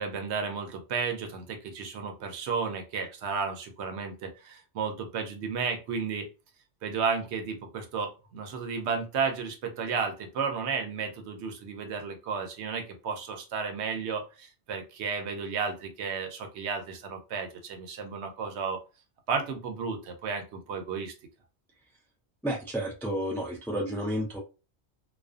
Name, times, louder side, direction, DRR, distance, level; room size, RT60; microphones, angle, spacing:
voice 1, 0.0-6.3 6.8-18.8 19.3-21.1, right 5 dB, 80° right, 5 dB, 0.9 m, -33 dB
voice 2, 22.4-24.4, equal, 5° left, -1 dB, 0.3 m, -31 dB
2.5 x 2.3 x 2.3 m, 0.32 s
omnidirectional pair, 1.1 m